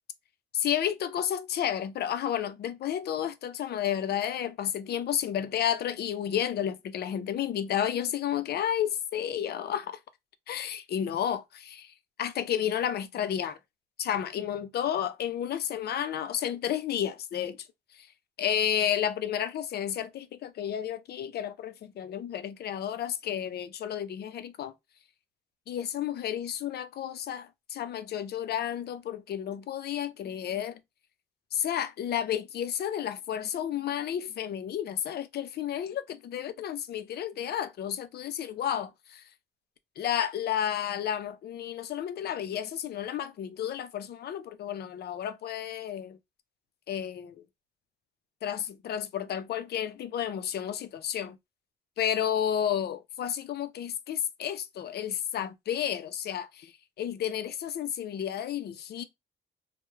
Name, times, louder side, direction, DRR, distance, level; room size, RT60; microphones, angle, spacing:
voice 1, 0.5-10.0 10.5-13.6 14.0-17.6 18.0-18.1 18.4-24.7 25.7-30.8 31.5-39.2 40.0-46.2 46.9-47.4 48.4-51.4 52.0-56.7 57.0-59.0, left 10 dB, 55° left, 0.4 m, -31 dB
2.2 x 2.0 x 3.0 m
cardioid pair, 90°, 20 cm